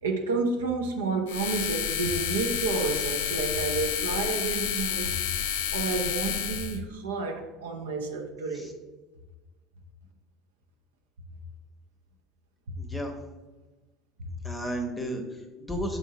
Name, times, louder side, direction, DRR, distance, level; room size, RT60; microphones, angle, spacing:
voice 1, 0.0-5.2 5.7-8.7 12.7-12.8, right 4 dB, 70° right, 3 dB, 0.4 m, -30 dB
sound 1, 1.3-6.8, left 9 dB, 65° left, 0.3 m, -30 dB
voice 2, 12.8-13.1 14.4-16.0, right 1 dB, 10° left, 3 dB, 0.7 m, -33 dB
4.1 x 2.6 x 3.9 m, 1.2 s
figure-of-eight pair, 65°, 0 cm